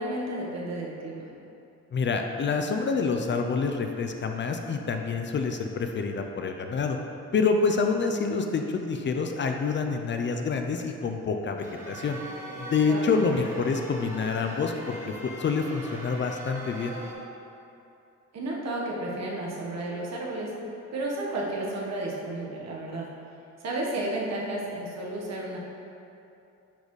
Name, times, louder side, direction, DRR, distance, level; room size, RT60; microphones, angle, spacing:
voice 1, 0.0-1.3 12.8-13.1 18.3-20.6 20.9-23.1 23.6-25.6, right 1 dB, 60° right, -3 dB, 1.4 m, -32 dB
voice 2, 1.9-7.0 7.3-12.2 12.6-17.0, left 4 dB, 40° left, 4 dB, 0.5 m, -27 dB
sound 1, 11.6-17.1, right 1 dB, 10° right, 1.3 m, -41 dB
10.0 x 4.0 x 3.2 m, 2.7 s
cardioid pair, 90°, 30 cm